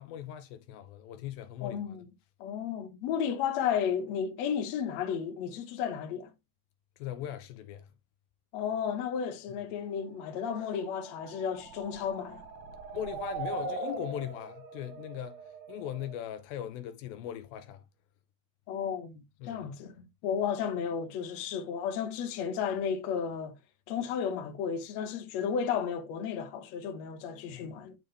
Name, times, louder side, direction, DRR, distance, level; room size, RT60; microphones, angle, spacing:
voice 1, 0.0-2.0 7.0-7.9 12.9-15.4 15.7-17.8 19.4-19.6 27.5-27.8, left 11 dB, 80° left, 2.5 m, -39 dB
voice 2, 1.6-2.1 2.4-6.3 8.5-12.4 18.7-23.6 23.9-28.0, left 7 dB, 65° left, 1.8 m, -33 dB
sound 1, 10.4-16.2, right 3 dB, 55° right, 2.5 m, -41 dB
11.0 x 3.7 x 3.3 m
omnidirectional pair, 4.3 m